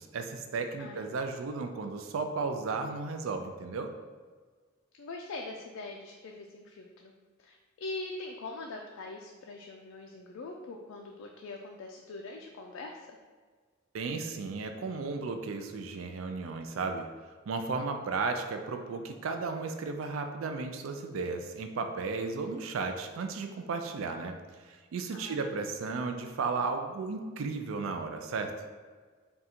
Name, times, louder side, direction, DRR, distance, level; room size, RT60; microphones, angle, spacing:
voice 1, 0.0-3.9 13.9-17.1 17.5-28.5, right 4 dB, 85° right, 6 dB, 0.4 m, -34 dB
voice 2, 4.9-7.1 7.4-13.0 18.1-18.2 25.1-25.5, left 3 dB, 85° left, 1 dB, 0.4 m, -42 dB
3.7 x 2.3 x 4.2 m, 1.5 s
head